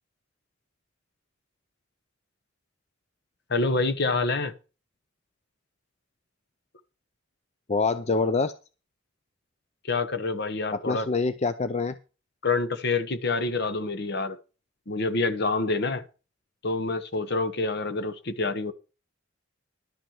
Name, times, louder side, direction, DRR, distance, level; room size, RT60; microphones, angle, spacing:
voice 1, 3.5-4.5 9.8-11.1 12.4-14.4 14.9-16.0 16.6-18.7, left 3 dB, 55° left, 1.1 m, -27 dB
voice 2, 7.7-8.5 10.7-11.9, left 4 dB, 35° left, 0.5 m, -25 dB
11.5 x 6.1 x 7.1 m
head